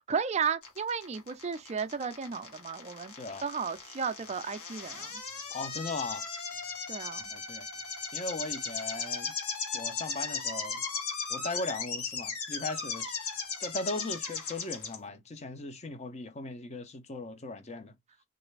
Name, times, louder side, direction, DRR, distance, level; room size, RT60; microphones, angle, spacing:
voice 1, 0.0-3.1 3.4-5.2 6.9-7.3, right 6 dB, 30° right, 0.4 m, -34 dB
sound 1, 0.6-14.9, left 5 dB, 85° left, 1.3 m, -37 dB
voice 2, 5.5-6.3 7.3-7.7 8.1-9.3 9.7-10.8 11.3-17.9, left 2 dB, 30° left, 0.6 m, -38 dB
3.2 x 2.5 x 3.1 m
head